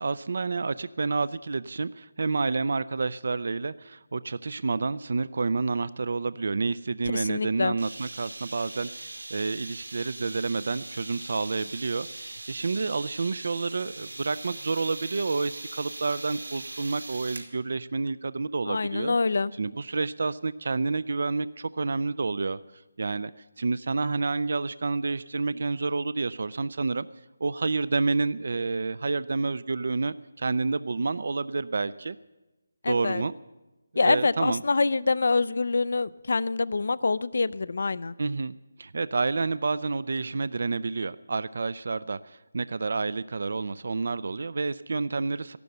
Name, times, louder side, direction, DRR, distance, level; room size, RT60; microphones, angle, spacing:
voice 1, 0.0-23.3 23.6-27.1 27.4-32.2 32.9-33.3 33.9-34.6 38.2-45.6, right 3 dB, 60° right, 17 dB, 0.4 m, -29 dB
voice 2, 7.1-7.7 18.7-19.5 32.8-33.2 34.0-38.1, left 3 dB, 65° left, 19 dB, 0.4 m, -25 dB
sound 1, 7.8-17.5, right 2 dB, 90° right, 2.5 m, -41 dB
14.0 x 12.0 x 7.9 m, 1.1 s
figure-of-eight pair, 160°, 0 cm